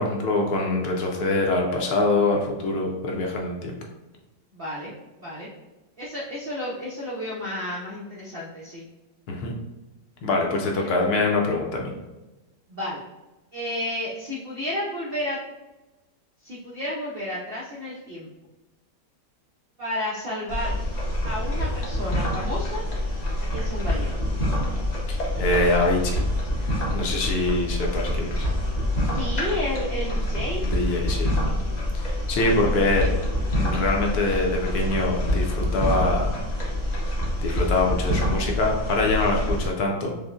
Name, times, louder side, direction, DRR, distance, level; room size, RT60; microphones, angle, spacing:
voice 1, 0.0-3.8 9.3-9.5 10.2-11.9 25.1-26.2 26.9-28.5 30.6-31.3 31.9-33.1 33.5-36.4 37.4-40.1, left 2 dB, 70° left, 1 dB, 1.1 m, -24 dB
voice 2, 4.5-4.9 5.2-5.5 6.0-8.8 10.8-10.9 12.7-13.0 13.5-15.4 16.4-18.3 19.8-20.7 21.2-22.8 23.4-24.1 29.1-30.6 32.4-32.5 32.8-33.1 39.2-39.5, left 1 dB, 65° right, -5 dB, 0.5 m, -32 dB
sound 1, 20.5-39.7, left 1 dB, 45° left, 0.5 m, -26 dB
5.0 x 2.0 x 2.4 m, 1.1 s
omnidirectional pair, 1.8 m